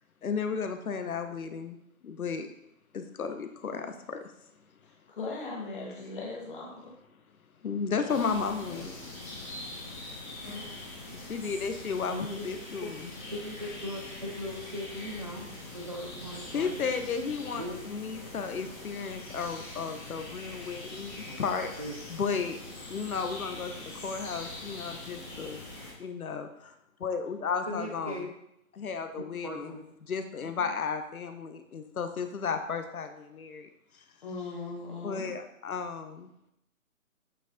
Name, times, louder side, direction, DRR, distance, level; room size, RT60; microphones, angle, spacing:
voice 1, 0.2-1.8 2.0-2.5 2.9-4.2 7.6-9.0 11.1-13.1 16.5-21.7 22.1-22.6 22.9-25.6 26.0-26.7 27.0-28.2 28.7-29.7 30.1-33.7 35.0-36.3, left 5 dB, 80° left, 7 dB, 0.9 m, -34 dB
voice 2, 4.8-6.9 30.4-30.7 34.2-35.4, left 3 dB, 35° left, -1 dB, 1.6 m, -39 dB
sound 1, 8.1-25.9, left 2 dB, 10° left, 0.9 m, -43 dB
voice 3, 8.5-8.9 12.1-12.6 13.3-16.8 17.5-17.8 21.3-21.4 21.8-21.9 27.7-28.3 29.4-29.8, left 1 dB, 25° right, -1 dB, 0.5 m, -39 dB
8.3 x 3.2 x 3.8 m, 0.79 s
hypercardioid pair, 160°, 42 cm